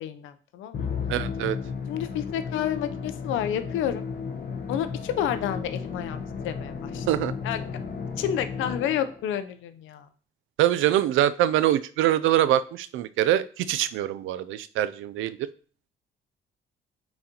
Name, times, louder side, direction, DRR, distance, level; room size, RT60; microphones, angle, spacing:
voice 1, 0.0-0.9 1.9-4.0 4.7-7.1 7.4-7.6 8.2-10.1, left 10 dB, 90° left, 10 dB, 0.6 m, -30 dB
Musical instrument, 0.7-9.3, left 5 dB, 50° left, 1.1 m, -34 dB
voice 2, 1.1-1.6 7.1-7.3 10.6-15.5, right 12 dB, 85° right, 15 dB, 0.4 m, -24 dB
8.8 x 4.0 x 2.9 m, 0.41 s
cardioid pair, 90°, 20 cm